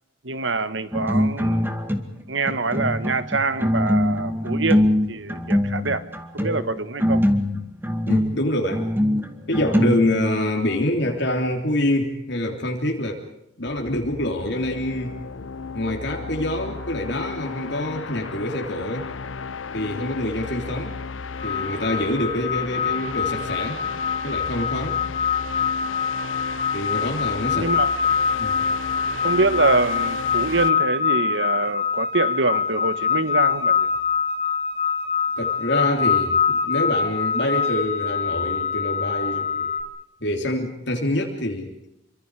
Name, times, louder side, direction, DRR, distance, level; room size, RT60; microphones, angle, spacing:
voice 1, 0.2-1.7 2.3-6.0 6.3-7.2 20.6-20.8 27.5-27.9 29.2-33.9, right 3 dB, 65° right, 13 dB, 1.6 m, -25 dB
sound 1, 0.9-2.2 2.5-10.6, equal, 10° right, 2.2 m, -22 dB
voice 2, 8.1-8.9 9.5-13.2 13.6-15.2 15.7-19.1 19.7-21.0 21.4-23.8 24.2-25.0 26.7-27.7 28.4-28.6 35.4-39.7 40.2-41.7, left 1 dB, 60° left, 1 dB, 3.4 m, -26 dB
sound 2, 13.7-30.7, left 5 dB, 80° left, 0.9 m, -34 dB
sound 3, 21.4-39.8, left 6 dB, 30° left, 3.2 m, -24 dB
28.0 x 25.0 x 4.9 m, 0.83 s
head